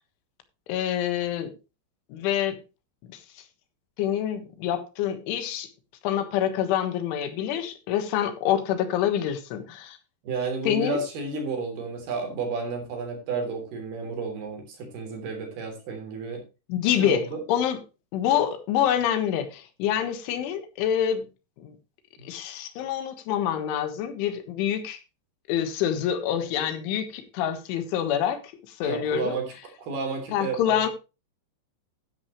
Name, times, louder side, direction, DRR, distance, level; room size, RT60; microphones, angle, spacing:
voice 1, 0.7-1.5 2.1-2.6 4.0-5.7 6.0-10.0 10.7-11.0 16.7-17.2 17.5-17.8 18.1-21.2 21.6-21.7 22.2-25.0 25.5-28.4 28.8-29.3 30.3-30.9, left 10 dB, 85° left, 10 dB, 3.8 m, -26 dB
voice 2, 10.2-16.4 16.8-17.4 22.2-22.3 28.8-30.8, right 4 dB, 55° right, 4 dB, 5.1 m, -32 dB
12.5 x 10.5 x 3.1 m, 0.29 s
omnidirectional pair, 5.5 m